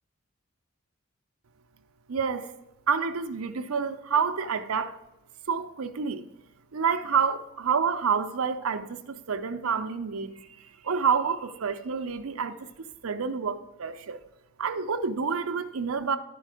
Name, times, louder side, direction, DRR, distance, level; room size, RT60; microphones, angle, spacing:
voice 1, 2.1-2.5 2.9-5.0 5.5-6.2 6.7-14.2 14.6-16.2, right 6 dB, 85° right, 0.6 m, -28 dB
11.0 x 4.6 x 4.8 m
head